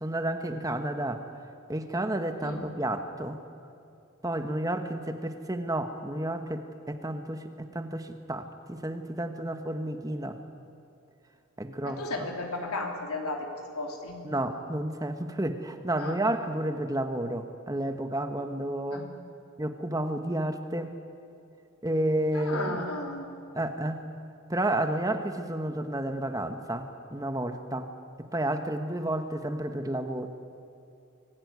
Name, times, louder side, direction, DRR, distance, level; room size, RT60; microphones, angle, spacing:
voice 1, 0.0-1.2 1.7-3.4 4.2-10.4 11.6-12.3 14.2-19.0 19.6-20.9 21.8-22.8 23.5-24.1 24.5-27.9 28.3-30.3, right 1 dB, 15° right, 7 dB, 1.1 m, -31 dB
voice 2, 11.8-13.5 13.7-14.2 16.0-16.2 18.9-19.1 22.3-23.3, left 2 dB, 85° left, 2 dB, 3.5 m, -34 dB
24.0 x 17.0 x 9.5 m, 2.6 s
head